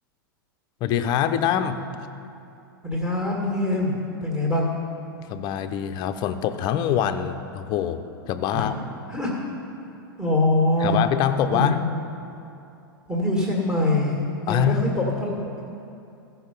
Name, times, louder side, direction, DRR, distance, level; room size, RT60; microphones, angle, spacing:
voice 1, 0.8-1.8 5.3-8.0 8.3-8.7 10.8-11.8 14.5-14.8, left 9 dB, 35° left, 9 dB, 0.6 m, -24 dB
voice 2, 2.8-4.7 8.5-8.7 9.1-9.3 10.2-11.0 11.5-12.0 13.1-14.2 14.4-15.5, left 1 dB, 5° right, -4 dB, 1.9 m, -24 dB
15.0 x 5.7 x 5.6 m, 2.7 s
hypercardioid pair, 100°, 12 cm